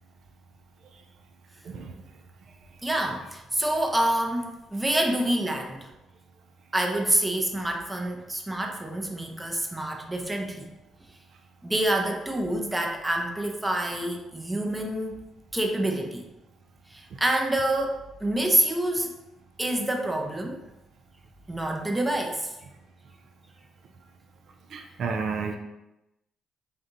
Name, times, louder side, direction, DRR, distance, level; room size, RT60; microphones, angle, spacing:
voice 1, 2.8-5.9 6.7-10.7 11.6-15.2 15.5-16.3 16.9-19.1 19.6-20.6 21.5-22.5, right 1 dB, 10° right, 2 dB, 0.6 m, -27 dB
voice 2, 24.7-25.5, right 5 dB, 65° right, 4 dB, 0.4 m, -31 dB
3.5 x 2.6 x 3.8 m, 0.96 s
cardioid pair, 90°, 0 cm